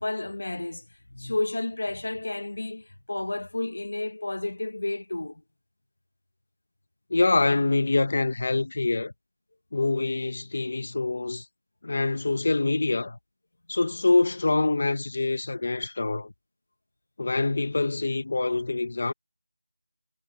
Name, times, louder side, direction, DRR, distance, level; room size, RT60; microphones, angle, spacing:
voice 1, 0.0-5.4, left 2 dB, 50° left, 1.2 m, -31 dB
voice 2, 7.1-9.1 9.7-11.4 11.8-13.2 13.7-16.3 17.2-19.1, left 3 dB, 30° left, 1.3 m, -25 dB
figure-of-eight pair, 180°, 0 cm